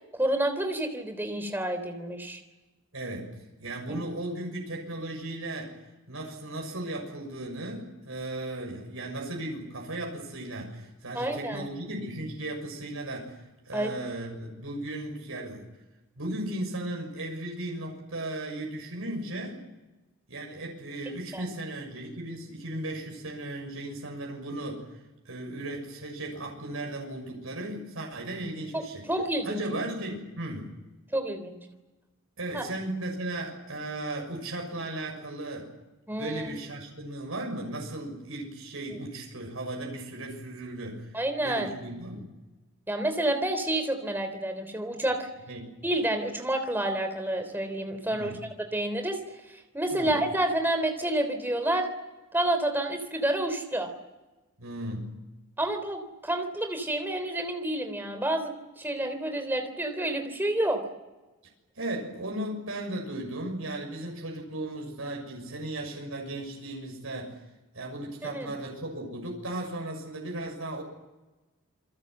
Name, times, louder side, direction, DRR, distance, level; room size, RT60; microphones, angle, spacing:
voice 1, 0.2-2.4 11.1-11.6 13.7-13.9 21.3-21.5 28.7-28.8 29.1-29.6 31.1-31.6 32.5-32.6 36.1-36.5 41.1-41.7 42.9-45.3 45.8-48.4 48.7-49.2 49.7-51.9 52.3-53.9 55.6-60.8 68.3-68.5, right 1 dB, 10° right, 6 dB, 3.4 m, -29 dB
voice 2, 2.9-5.8 6.1-15.7 16.2-19.6 20.3-29.1 29.4-30.7 32.4-35.7 36.1-41.1 41.4-42.3 45.5-45.6 48.1-48.4 49.9-50.2 54.6-55.2 61.7-67.4 67.7-70.8, right 1 dB, 75° right, 0 dB, 6.5 m, -36 dB
28.5 x 21.5 x 7.9 m, 1.1 s
head